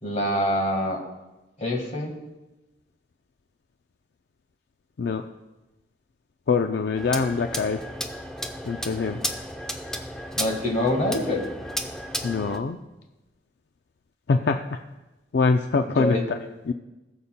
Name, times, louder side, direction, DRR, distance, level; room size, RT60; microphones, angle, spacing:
voice 1, 0.0-1.0 1.6-2.1 10.3-11.5 15.9-16.3, left 1 dB, 40° left, 2 dB, 1.6 m, -25 dB
voice 2, 6.5-7.8 8.7-9.2 12.2-12.8 14.3-14.6 15.3-16.1 16.7-16.8, left 4 dB, 65° left, 6 dB, 0.4 m, -23 dB
sound 1, 7.0-12.6, equal, 5° left, 0.5 m, -33 dB
19.0 x 7.0 x 2.2 m, 1.0 s
head